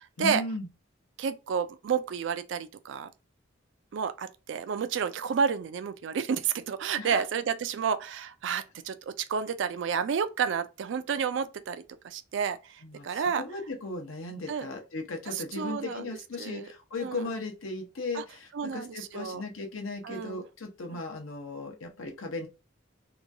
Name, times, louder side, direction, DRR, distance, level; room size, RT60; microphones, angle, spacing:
voice 1, 0.2-0.7 7.0-7.2 12.8-22.5, left 3 dB, 80° left, 0.8 m, -37 dB
voice 2, 1.2-3.1 3.9-13.4 14.5-14.7 15.3-16.1 16.4-16.7 17.0-17.3 18.1-18.2 18.5-19.4 20.0-20.4, right 6 dB, 65° right, 0.3 m, -31 dB
2.9 x 2.3 x 2.5 m
head